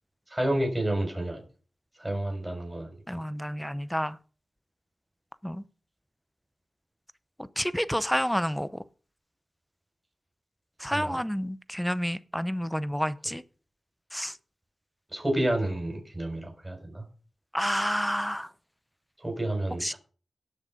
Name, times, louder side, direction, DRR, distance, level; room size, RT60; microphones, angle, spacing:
voice 1, 0.3-1.4 2.0-2.9 10.9-11.2 15.1-17.0 19.2-20.0, right 1 dB, 15° right, 6.4 m, -29 dB
voice 2, 3.1-4.2 5.4-5.6 7.6-8.7 10.8-13.4 14.1-14.3 17.5-18.5 19.8-19.9, equal, 5° left, 0.7 m, -29 dB
18.0 x 6.5 x 5.1 m
cardioid pair, 55°, 0 cm